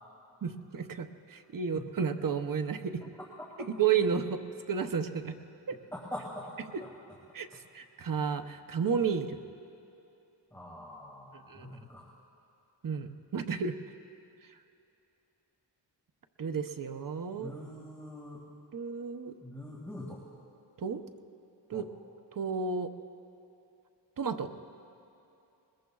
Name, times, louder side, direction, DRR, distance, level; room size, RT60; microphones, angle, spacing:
voice 1, 0.4-3.0 3.8-5.4 5.7-5.8 7.3-7.5 7.7-9.4 11.5-11.7 12.8-13.8 16.4-17.5 18.7-19.3 20.8-21.0 21.7-21.8 22.3-22.9 24.2-24.5, right 6 dB, 50° right, 7 dB, 0.7 m, -32 dB
voice 2, 3.2-3.7 5.9-6.5 6.8-6.9 10.5-12.1 17.3-18.4 19.4-20.2 21.7-21.9, left 1 dB, 5° left, -5 dB, 1.9 m, -44 dB
21.0 x 21.0 x 2.3 m, 2.8 s
wide cardioid pair, 105°, 43 cm